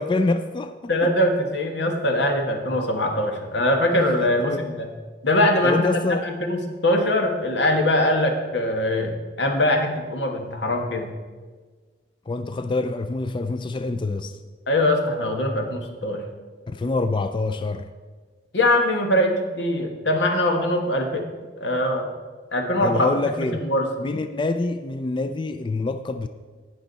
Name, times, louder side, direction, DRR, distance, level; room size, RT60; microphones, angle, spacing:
voice 1, 0.0-1.1 4.4-4.6 5.6-6.3 12.3-14.4 16.7-17.9 22.8-23.6 24.0-26.3, left 3 dB, 30° left, 9 dB, 0.3 m, -26 dB
voice 2, 0.9-4.9 5.2-11.1 14.7-16.2 18.5-21.2 21.6-22.1 22.5-23.1 23.6-23.9, left 1 dB, 85° left, 3 dB, 1.5 m, -22 dB
18.0 x 6.2 x 4.1 m, 1.4 s
head